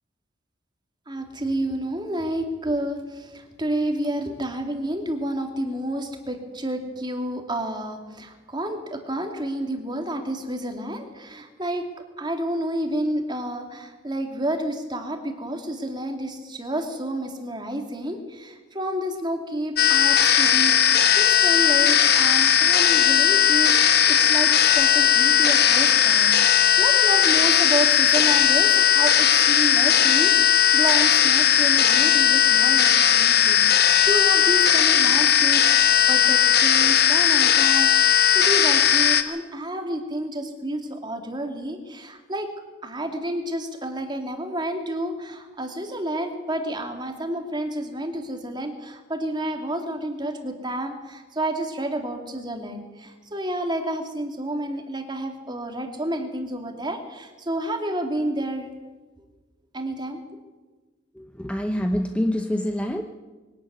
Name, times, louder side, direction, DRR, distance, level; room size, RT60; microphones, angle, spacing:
voice 1, 1.1-11.9 12.2-42.5 42.8-58.7 59.7-60.2, right 1 dB, 20° right, 4 dB, 2.6 m, -30 dB
sound 1, 19.8-39.2, left 9 dB, 50° left, 1.2 m, -17 dB
voice 2, 61.2-63.0, equal, 5° left, 5 dB, 0.8 m, -26 dB
22.0 x 12.5 x 9.5 m, 1.2 s
head